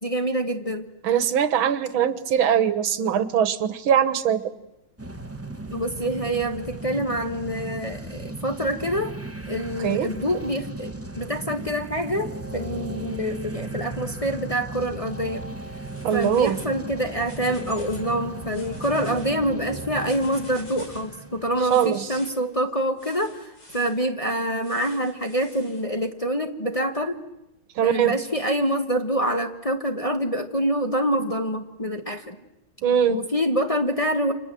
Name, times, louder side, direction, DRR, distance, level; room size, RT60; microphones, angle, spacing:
voice 1, 0.0-0.9 5.7-9.1 9.5-15.5 16.1-27.2 27.8-32.4 33.1-34.3, equal, 20° left, 5 dB, 1.1 m, -26 dB
voice 2, 1.0-4.4 9.8-10.1 16.0-16.6 21.7-22.1 27.8-28.2 32.8-33.2, right 9 dB, 85° right, 13 dB, 2.0 m, -21 dB
sound 1, 5.0-22.1, right 2 dB, 10° right, 0.7 m, -36 dB
sound 2, 15.7-16.8 17.1-18.1 18.4-19.3 19.9-21.1 21.7-22.3 23.0-24.0 24.6-25.8, left 2 dB, 60° left, 5.8 m, -47 dB
29.5 x 26.5 x 7.6 m, 0.95 s
omnidirectional pair, 2.2 m